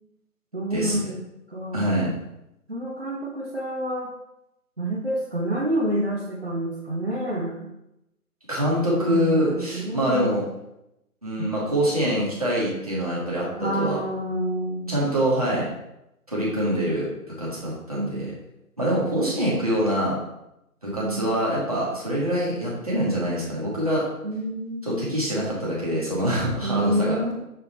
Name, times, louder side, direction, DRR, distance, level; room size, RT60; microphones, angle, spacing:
voice 1, 0.5-1.2 1.5-2.0 2.7-4.1 4.8-7.7 9.0-10.3 11.4-11.5 13.6-15.0 17.9-18.3 19.1-19.7 21.0-21.5 24.2-25.1 26.6-27.4, right 1 dB, 45° right, -4 dB, 0.7 m, -28 dB
voice 2, 1.7-2.1 8.5-10.4 11.2-14.0 14.9-15.7 16.3-17.1 17.4-18.3 18.8-20.2 20.8-24.0 24.8-27.2, equal, 25° right, -7 dB, 1.4 m, -25 dB
6.5 x 3.5 x 4.1 m, 0.87 s
figure-of-eight pair, 175°, 46 cm